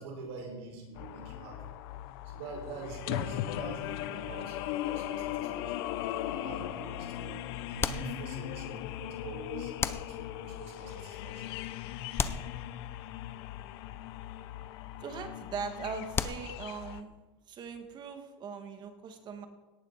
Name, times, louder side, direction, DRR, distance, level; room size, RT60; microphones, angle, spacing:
voice 1, 0.0-1.6 2.3-4.6 4.9-5.9 6.3-9.7 10.1-11.5, right 4 dB, 85° right, 0 dB, 5.3 m, -45 dB
sound 1, 0.9-17.0, left 13 dB, 75° left, 0.8 m, -38 dB
sound 2, 6.0-6.6 7.8-8.7 9.8-10.6 12.1-13.2 16.1-17.0, left 5 dB, 20° left, 0.6 m, -36 dB
voice 2, 15.0-17.1 17.5-19.5, right 5 dB, 35° right, 6 dB, 1.8 m, -40 dB
18.0 x 11.0 x 4.2 m, 1.2 s
supercardioid pair, 140°, 13 cm